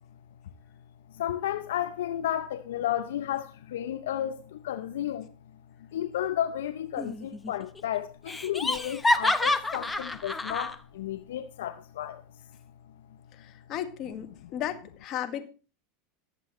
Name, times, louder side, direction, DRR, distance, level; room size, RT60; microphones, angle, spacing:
voice 1, 1.1-5.3 5.9-12.2, left 11 dB, 75° left, 0.7 m, -32 dB
Laughter, 7.0-7.5 7.8-7.9 8.3-10.8, left 2 dB, 10° left, 0.9 m, -28 dB
voice 2, 13.4-15.4, left 11 dB, 45° left, 1.8 m, -35 dB
19.0 x 7.5 x 3.1 m
hypercardioid pair, 95°, 0 cm